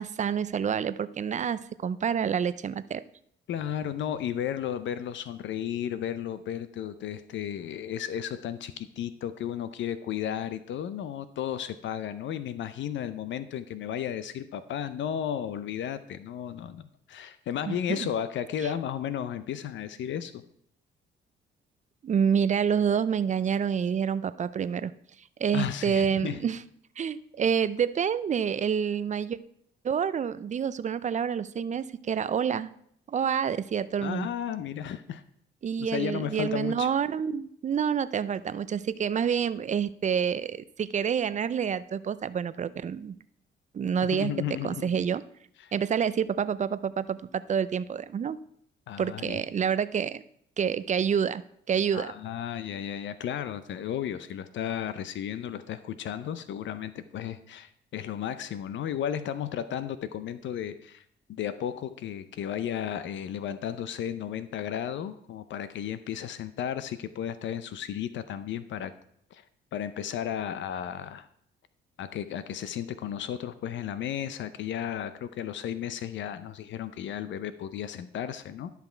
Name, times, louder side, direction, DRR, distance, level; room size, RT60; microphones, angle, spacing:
voice 1, 0.0-3.0 17.7-18.1 22.0-24.9 25.4-26.6 27.0-29.4 29.8-32.7 33.1-34.3 35.6-43.1 43.7-44.3 44.6-45.2 45.7-48.4 49.0-50.2 50.6-51.4 51.7-52.1, right 7 dB, 35° right, 16 dB, 0.5 m, -28 dB
voice 2, 3.5-16.8 17.1-20.4 25.5-26.4 34.0-35.2 35.8-36.9 44.1-45.0 45.6-45.7 48.9-49.4 51.9-61.0 61.3-68.9 69.3-69.4 69.7-71.3 72.0-78.7, left 9 dB, 70° left, 13 dB, 0.6 m, -34 dB
12.0 x 5.8 x 4.4 m, 0.69 s
cardioid pair, 90°, 20 cm